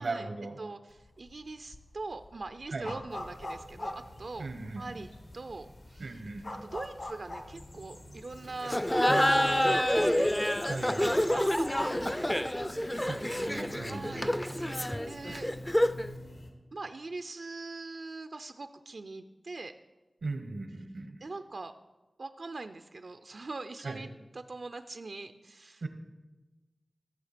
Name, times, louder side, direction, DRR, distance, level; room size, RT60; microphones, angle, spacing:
voice 1, 0.0-0.6 2.7-3.0 4.4-4.8 6.0-6.5 9.1-9.8 10.6-11.2 13.1-14.1 20.2-21.2 23.8-24.0 25.8-25.9, right 3 dB, 90° right, 6 dB, 1.1 m, -38 dB
voice 2, 0.6-4.5 4.7-5.1 5.3-6.2 6.6-10.3 11.2-12.5 13.9-15.5 16.7-19.7 21.2-21.7 22.2-24.1 24.3-25.9, right 3 dB, 65° right, 9 dB, 0.4 m, -42 dB
sound 1, 1.0-1.4 1.7-4.8 5.3-5.4 5.6-7.5, left 1 dB, 50° left, 1.2 m, -41 dB
sound 2, 3.1-16.5, equal, 75° left, 1.5 m, -48 dB
Laughter, 8.6-16.1, left 1 dB, 15° left, 0.4 m, -28 dB
14.5 x 6.5 x 5.0 m, 1.1 s
wide cardioid pair, 80°, 0 cm